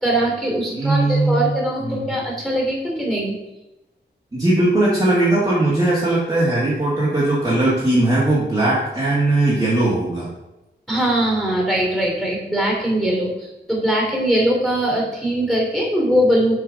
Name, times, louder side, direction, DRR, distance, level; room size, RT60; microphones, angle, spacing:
voice 1, 0.0-3.4 10.9-16.5, right 1 dB, ahead, -2 dB, 2.9 m, -21 dB
voice 2, 0.7-1.5 1.8-2.1 4.3-10.3, right 2 dB, 20° right, -7 dB, 1.9 m, -19 dB
7.3 x 4.5 x 5.2 m, 1.0 s
wide cardioid pair, 125°, 19 cm